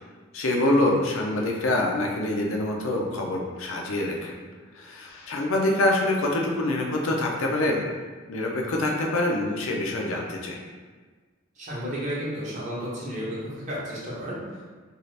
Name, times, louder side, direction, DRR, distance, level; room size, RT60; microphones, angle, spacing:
voice 1, 0.3-4.3 4.8-7.8 8.3-10.5, left 1 dB, 75° left, 0 dB, 0.5 m, -25 dB
voice 2, 11.6-14.6, equal, 35° right, -7 dB, 0.7 m, -32 dB
2.7 x 2.4 x 3.2 m, 1.4 s
head